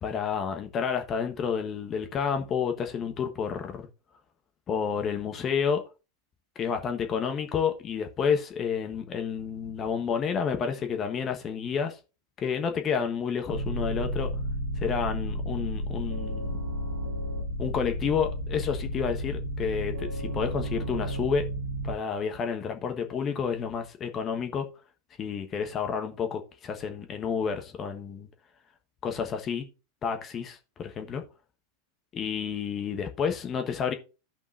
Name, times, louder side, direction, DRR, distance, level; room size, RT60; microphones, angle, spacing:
voice 1, 0.0-3.9 4.7-5.8 6.6-12.0 12.4-14.3 14.8-16.6 17.6-21.4 21.8-24.7 25.2-28.3 29.0-29.7 30.0-31.2 32.1-33.9, left 6 dB, 30° left, 1.2 m, -30 dB
sound 1, 13.5-21.9, equal, 70° right, 2.0 m, -32 dB
15.0 x 5.3 x 2.6 m
figure-of-eight pair, 85°, 0 cm